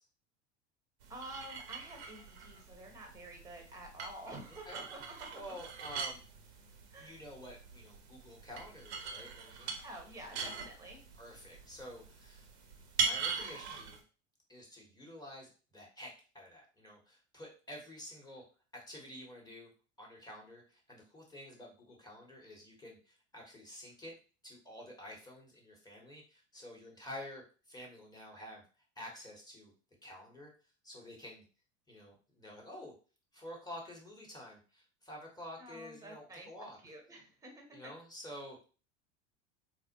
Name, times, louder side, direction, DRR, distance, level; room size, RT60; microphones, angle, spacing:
sound 1, 1.0-14.0, right 5 dB, 65° right, 0.9 m, -42 dB
voice 1, 1.1-5.1 6.9-7.2 9.8-11.0 35.6-36.5 36.8-37.9, right 1 dB, 10° right, 2 dB, 1.0 m, -49 dB
voice 2, 5.3-6.2 7.0-9.8 11.2-12.5 13.0-14.0 14.5-18.4 18.7-19.7 20.0-24.2 24.4-28.6 29.0-29.7 30.0-30.5 30.8-31.4 31.9-32.9 33.3-36.8 37.7-38.7, left 1 dB, 10° left, -1 dB, 1.2 m, -49 dB
4.0 x 2.1 x 2.9 m, 0.36 s
figure-of-eight pair, 75°, 35 cm